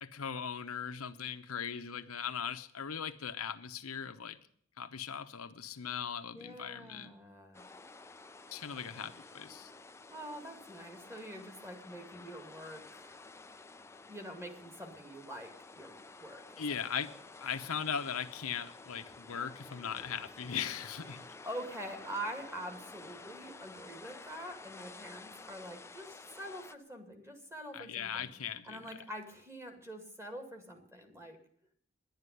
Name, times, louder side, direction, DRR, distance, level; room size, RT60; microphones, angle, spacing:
voice 1, 0.0-4.4 4.8-7.1 8.5-9.7 16.6-17.1 17.4-21.2 27.7-29.0, left 7 dB, 85° left, 0.9 m, -39 dB
voice 2, 6.3-7.6 10.1-13.2 14.1-16.8 21.1-28.3 28.6-31.4, right 1 dB, 15° right, 2.2 m, -45 dB
sound 1, 7.5-26.8, left 3 dB, 15° left, 0.5 m, -52 dB
11.0 x 9.6 x 9.8 m
head